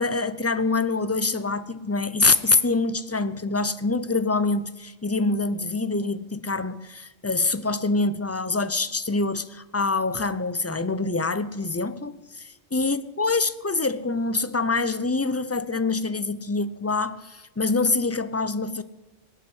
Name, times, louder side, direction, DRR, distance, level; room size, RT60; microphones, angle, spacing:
voice 1, 0.0-18.8, left 3 dB, 20° left, 0.5 m, -25 dB
19.0 x 8.7 x 8.0 m
omnidirectional pair, 1.2 m